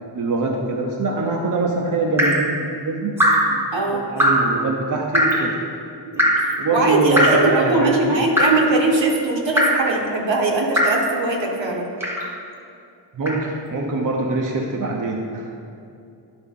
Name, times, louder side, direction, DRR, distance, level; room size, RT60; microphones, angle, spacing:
voice 1, 0.1-3.1 3.5-3.6 4.1-5.5 6.6-8.0 13.1-15.6, right 3 dB, 45° right, 0 dB, 0.7 m, -23 dB
Drip, 2.2-2.5 3.2-3.6 4.2-4.5 5.1-5.5 6.2-6.5 7.2-7.5 8.4-8.7 9.6-9.9 10.8-11.1 12.0-12.3 13.3-13.4, equal, 5° right, 0.9 m, -19 dB
voice 2, 3.7-4.0 6.1-11.9, right 2 dB, 75° right, 0 dB, 1.3 m, -21 dB
11.5 x 4.7 x 3.7 m, 2.6 s
wide cardioid pair, 155°, 46 cm